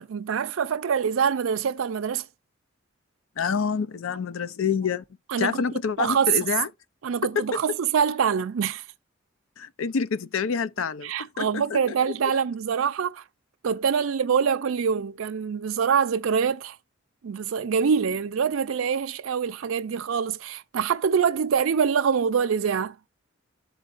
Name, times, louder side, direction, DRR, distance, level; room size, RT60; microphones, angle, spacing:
voice 1, 0.0-2.3 5.3-5.6 6.0-6.3 7.0-8.8 11.0-13.2 13.6-16.8 17.2-22.9, right 7 dB, 85° right, 0.4 m, -25 dB
voice 2, 3.4-5.0 5.4-6.7 7.4-7.5 9.6-11.8, left 6 dB, 90° left, 0.5 m, -27 dB
13.0 x 4.5 x 2.5 m
head